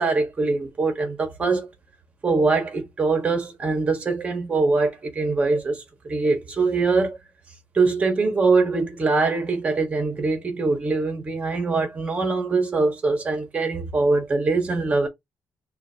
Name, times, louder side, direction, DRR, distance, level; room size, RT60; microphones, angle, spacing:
voice 1, 0.0-1.7 2.2-7.2 7.7-15.1, right 3 dB, 25° right, 1.6 m, -23 dB
6.1 x 2.7 x 2.9 m
cardioid pair, 160°, 5 cm